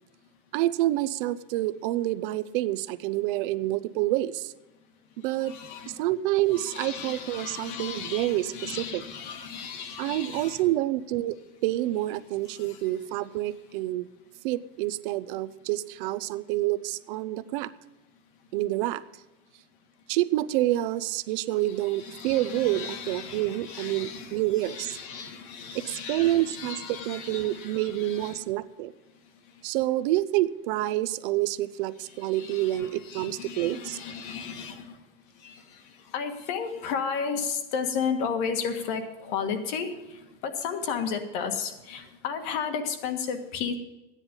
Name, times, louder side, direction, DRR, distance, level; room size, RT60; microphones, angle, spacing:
voice 1, 0.5-4.5 5.2-5.5 5.9-9.0 10.0-11.4 11.6-14.1 14.4-17.7 18.5-19.0 20.1-25.0 25.7-28.9 29.6-34.0, right 15 dB, 60° right, 15 dB, 0.6 m, -28 dB
voice 2, 5.4-6.0 6.5-10.6 12.5-12.8 22.0-28.4 32.3-35.0 35.4-35.6 36.1-43.7, left 6 dB, 60° left, 7 dB, 1.7 m, -34 dB
14.0 x 9.9 x 5.3 m, 1.0 s
cardioid pair, 180°, 29 cm